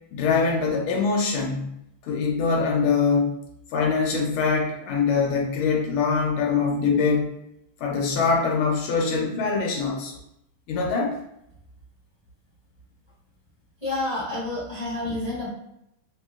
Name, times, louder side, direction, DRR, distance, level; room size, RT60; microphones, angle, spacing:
voice 1, 0.1-1.7 2.0-3.3 3.7-7.3 7.8-10.1 10.7-11.2, left 5 dB, 85° left, 0 dB, 1.5 m, -23 dB
voice 2, 13.8-15.5, left 2 dB, 25° left, -10 dB, 1.0 m, -29 dB
3.3 x 2.7 x 2.3 m, 0.80 s
omnidirectional pair, 2.3 m